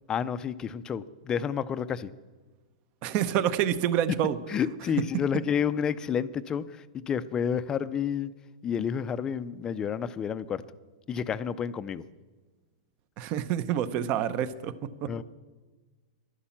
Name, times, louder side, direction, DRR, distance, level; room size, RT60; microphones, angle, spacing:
voice 1, 0.1-2.1 4.5-8.3 8.6-10.6 11.1-12.0 15.1-15.2, left 7 dB, 20° left, 13 dB, 0.5 m, -30 dB
voice 2, 3.0-4.4 13.2-14.7 15.0-15.1, right 10 dB, 40° right, 15 dB, 0.8 m, -27 dB
11.5 x 11.5 x 7.3 m, 1.3 s
hypercardioid pair, 140°, 4 cm